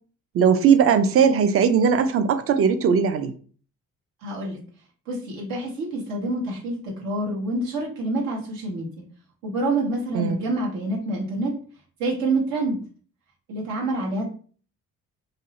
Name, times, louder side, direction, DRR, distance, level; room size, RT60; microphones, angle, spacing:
voice 1, 0.3-3.3 10.1-10.4, right 7 dB, 45° right, 0.4 m, -19 dB
voice 2, 4.2-4.6 5.1-9.0 9.4-11.5 12.0-12.8 13.5-14.3, right 2 dB, 80° right, 1.0 m, -27 dB
2.6 x 2.0 x 2.7 m
cardioid pair, 85°, 34 cm